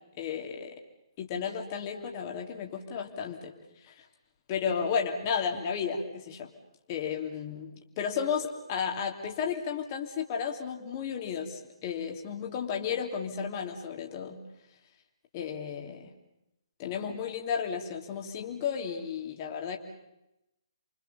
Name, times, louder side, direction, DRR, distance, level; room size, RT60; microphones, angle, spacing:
voice 1, 0.2-0.7 1.2-3.5 3.9-4.0 4.5-6.5 6.9-14.4 15.3-16.1 16.8-19.8, left 7 dB, 30° left, 2 dB, 3.0 m, -33 dB
29.0 x 24.5 x 7.1 m, 0.89 s
figure-of-eight pair, 135°, 3 cm